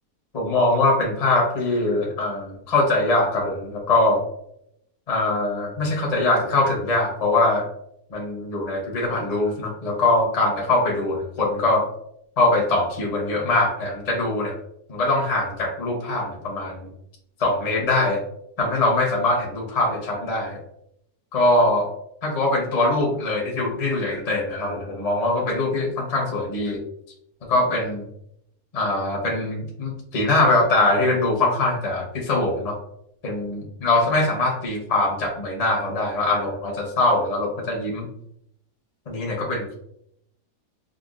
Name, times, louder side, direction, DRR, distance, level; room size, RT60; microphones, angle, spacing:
voice 1, 0.3-4.2 5.1-7.6 8.1-11.8 12.4-14.5 14.9-16.9 17.4-18.2 18.6-20.6 21.3-21.9 22.2-26.8 27.5-28.0 28.7-32.8 33.2-38.1 39.1-39.7, left 2 dB, 35° left, 0 dB, 0.6 m, -22 dB
5.0 x 2.2 x 2.4 m, 0.75 s
omnidirectional pair, 1.8 m